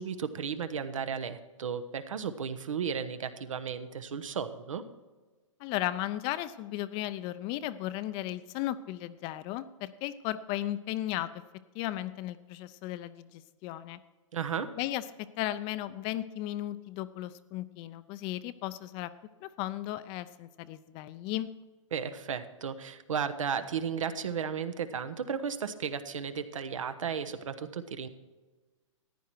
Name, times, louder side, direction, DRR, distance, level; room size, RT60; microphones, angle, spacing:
voice 1, 0.0-4.8 14.3-14.7 21.9-28.1, right 7 dB, 75° right, 11 dB, 1.1 m, -34 dB
voice 2, 5.6-11.3 11.7-14.0 14.8-15.0 15.4-19.1 19.4-21.5, left 14 dB, 30° left, 14 dB, 0.5 m, -35 dB
14.5 x 10.0 x 4.6 m, 1.3 s
hypercardioid pair, 130°, 17 cm